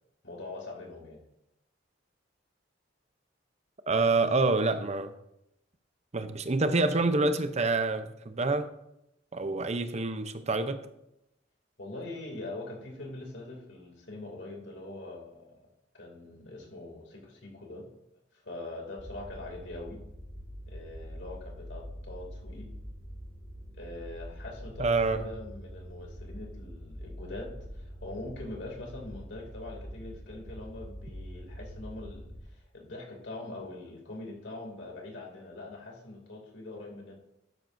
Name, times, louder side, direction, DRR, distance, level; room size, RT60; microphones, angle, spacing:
voice 1, 0.2-1.2 11.8-15.7 15.9-17.9 18.3-20.0 20.7-22.7 23.7-37.2, left 2 dB, 70° left, 0 dB, 2.7 m, -43 dB
voice 2, 3.9-5.1 6.1-8.7 9.3-10.8 24.8-25.2, right 3 dB, 35° right, 9 dB, 0.7 m, -27 dB
sound 1, 19.0-32.4, equal, 5° right, 4.2 m, -44 dB
12.0 x 9.4 x 2.7 m, 0.83 s
head